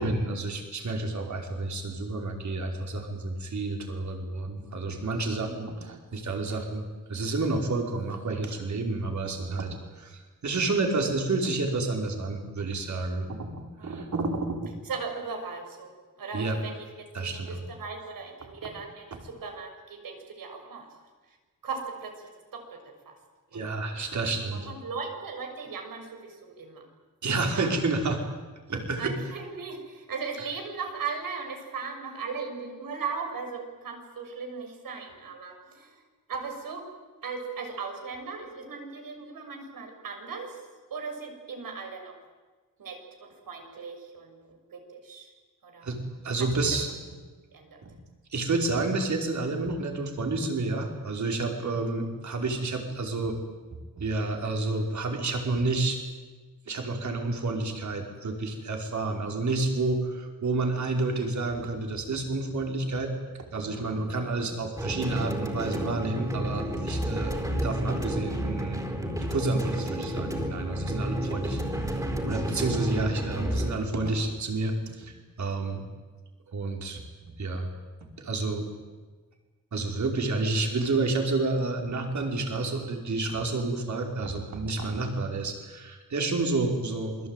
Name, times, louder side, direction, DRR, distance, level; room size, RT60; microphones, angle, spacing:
voice 1, 0.0-14.7 16.3-16.6 17.1-17.6 18.6-18.7 23.5-24.7 27.2-28.2 28.7-29.1 45.8-46.0 46.2-46.9 47.8-47.9 48.3-53.4 54.0-56.0 56.7-63.1 63.4-68.9 69.3-71.6 71.9-72.0 72.3-75.8 76.5-77.0 77.4-77.7 78.2-78.7 79.7-87.3, right 3 dB, 55° right, 3 dB, 5.0 m, -30 dB
voice 2, 13.8-14.1 14.8-15.9 16.2-16.9 17.2-20.9 21.3-21.4 21.6-23.2 23.5-23.7 24.5-26.8 27.5-27.7 29.0-36.0 36.3-36.9 37.2-40.6 40.9-42.1 42.8-45.3 45.6-45.9 47.5-47.8 72.5-72.8, right 5 dB, 80° right, 3 dB, 6.6 m, -38 dB
sound 1, 64.8-73.8, equal, 10° right, 4.4 m, -30 dB
27.5 x 22.0 x 9.2 m, 1.3 s
wide cardioid pair, 140°, 33 cm